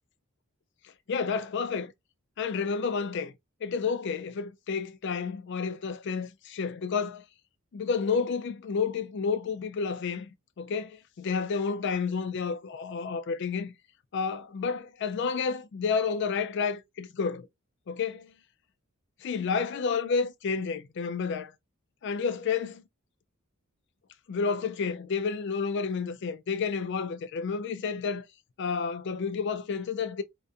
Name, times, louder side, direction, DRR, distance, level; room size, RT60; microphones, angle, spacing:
voice 1, 1.1-1.9 2.4-3.3 3.6-7.2 7.7-10.3 10.6-13.7 14.1-17.5 17.9-18.3 19.2-21.5 22.0-22.8 24.3-28.2 28.6-30.2, left 5 dB, 55° left, 0.4 m, -30 dB
2.6 x 2.2 x 2.3 m
head